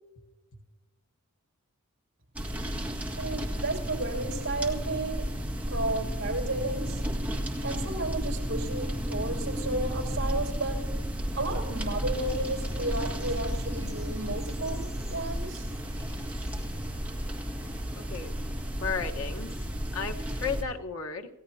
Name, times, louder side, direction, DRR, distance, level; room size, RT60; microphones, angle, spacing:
sound 1, 2.4-20.6, equal, 5° right, 1.9 m, -33 dB
voice 1, 3.2-5.3 5.7-7.0 7.4-10.8 11.4-15.7, right 2 dB, 55° right, 0 dB, 6.1 m, -33 dB
sound 2, 11.2-18.9, equal, 10° left, 4.2 m, -52 dB
voice 2, 17.9-18.3 18.8-19.7 19.9-21.3, left 5 dB, 75° left, 3 dB, 1.4 m, -34 dB
28.5 x 16.0 x 2.9 m, 1.2 s
head